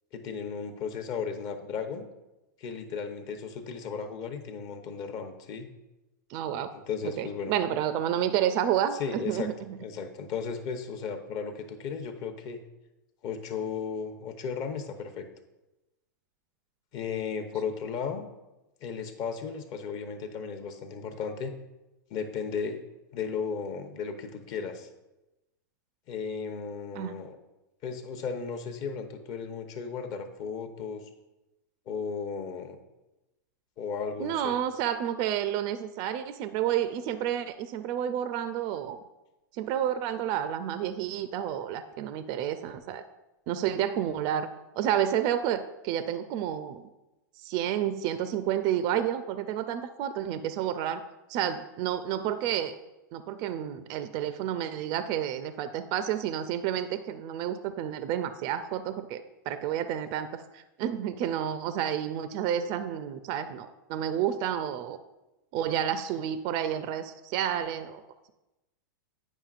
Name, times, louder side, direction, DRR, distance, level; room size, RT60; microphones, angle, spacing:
voice 1, 0.1-2.0 2.6-5.7 6.7-7.5 9.0-9.5 9.8-12.6 13.2-15.3 16.9-18.3 18.8-21.5 22.1-22.8 23.1-24.9 26.1-27.4 27.8-31.0 31.9-32.8 33.8-34.6, left 6 dB, 40° left, 6 dB, 0.8 m, -35 dB
voice 2, 6.3-6.7 7.2-9.8 26.9-27.1 34.2-39.0 39.5-43.0 43.5-44.5 44.8-46.9 47.4-51.0 51.3-52.7 53.1-65.0 65.5-68.0, right 10 dB, 40° right, 11 dB, 0.4 m, -30 dB
8.9 x 5.3 x 2.4 m, 1.0 s
hypercardioid pair, 125°, 10 cm